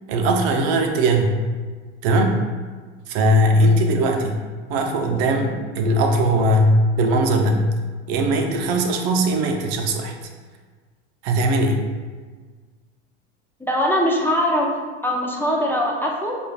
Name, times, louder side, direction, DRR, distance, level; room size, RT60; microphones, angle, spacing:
voice 1, 0.1-1.3 2.0-2.4 3.1-4.4 4.7-6.7 7.0-7.6 8.1-10.1 11.2-11.8, right 1 dB, 60° right, 3 dB, 0.7 m, -19 dB
voice 2, 13.6-14.7 15.0-16.4, equal, 5° left, -2 dB, 0.5 m, -21 dB
6.6 x 2.5 x 2.3 m, 1.4 s
hypercardioid pair, 95°, 35 cm